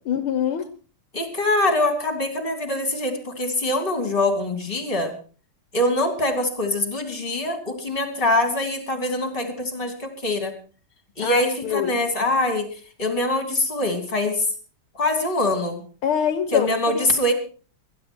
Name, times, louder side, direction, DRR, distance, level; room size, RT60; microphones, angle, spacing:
voice 1, 0.1-0.7 11.2-11.9 12.2-12.3 16.0-17.1, left 8 dB, 75° left, 1.8 m, -24 dB
voice 2, 1.1-5.1 5.7-10.5 11.2-12.6 13.0-14.5 14.9-15.8 16.5-17.3, left 1 dB, 25° left, 3.2 m, -23 dB
22.0 x 10.5 x 4.5 m
omnidirectional pair, 2.4 m